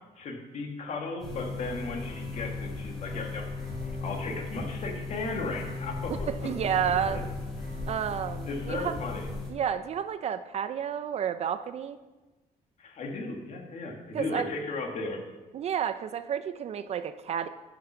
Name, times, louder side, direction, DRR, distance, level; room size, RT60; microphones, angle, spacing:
voice 1, 0.2-3.4 3.8-6.1 7.0-7.2 8.4-9.3 12.8-15.2, left 3 dB, 50° left, 2 dB, 1.5 m, -35 dB
sound 1, 1.2-9.5, left 3 dB, ahead, 3.2 m, -37 dB
sound 2, 1.6-9.6, left 1 dB, 80° left, 2.1 m, -48 dB
voice 2, 6.4-7.2 7.9-9.0 9.5-12.0 14.1-14.5 15.5-17.5, right 8 dB, 45° right, 11 dB, 0.4 m, -30 dB
8.5 x 5.7 x 5.9 m, 1.2 s
cardioid pair, 160°, 16 cm